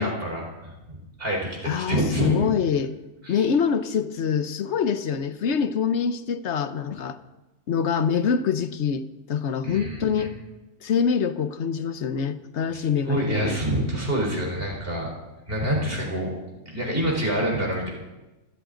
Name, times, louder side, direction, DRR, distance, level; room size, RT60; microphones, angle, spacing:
voice 1, 0.0-1.4 1.7-2.5 3.2-3.4 9.6-10.3 12.7-15.1 15.5-16.3 16.7-17.9, right 1 dB, 45° right, -2 dB, 4.4 m, -27 dB
voice 2, 1.6-2.9 3.3-7.2 7.7-10.3 10.8-13.6, left 7 dB, 60° left, 11 dB, 1.1 m, -25 dB
26.5 x 13.0 x 3.9 m, 1.1 s
omnidirectional pair, 1.3 m